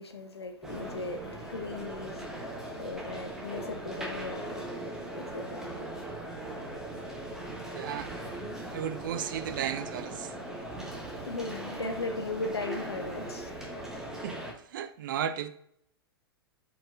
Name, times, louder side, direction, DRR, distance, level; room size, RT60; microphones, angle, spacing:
voice 1, 0.0-4.8 5.1-5.9 10.9-13.6, left 3 dB, 85° left, 0.5 m, -38 dB
sound 1, 0.6-14.5, right 1 dB, 5° right, 0.8 m, -39 dB
voice 2, 7.7-8.2 8.7-10.4 14.2-15.5, right 9 dB, 50° right, 0.4 m, -35 dB
4.3 x 4.1 x 2.4 m
figure-of-eight pair, 105°, 13 cm